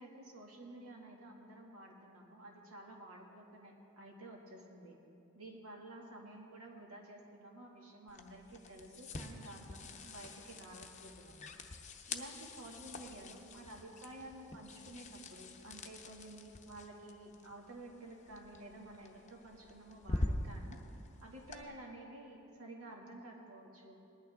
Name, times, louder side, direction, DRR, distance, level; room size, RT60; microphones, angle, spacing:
voice 1, 0.0-5.0 5.3-11.4 12.1-20.8 21.2-24.0, right 1 dB, 80° right, -1 dB, 1.9 m, -52 dB
sound 1, 8.1-21.6, left 2 dB, 35° left, 0.7 m, -45 dB
19.5 x 11.5 x 3.5 m, 2.9 s
head